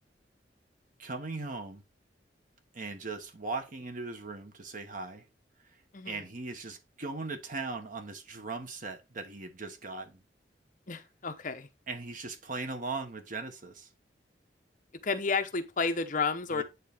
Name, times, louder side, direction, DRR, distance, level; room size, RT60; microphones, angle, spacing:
voice 1, 1.0-1.8 2.7-5.2 6.1-10.2 11.9-13.9 16.5-16.6, right 3 dB, 50° right, 1.1 m, -39 dB
voice 2, 10.9-11.7 15.0-16.6, left 4 dB, 50° left, 0.9 m, -31 dB
9.5 x 3.8 x 3.5 m
head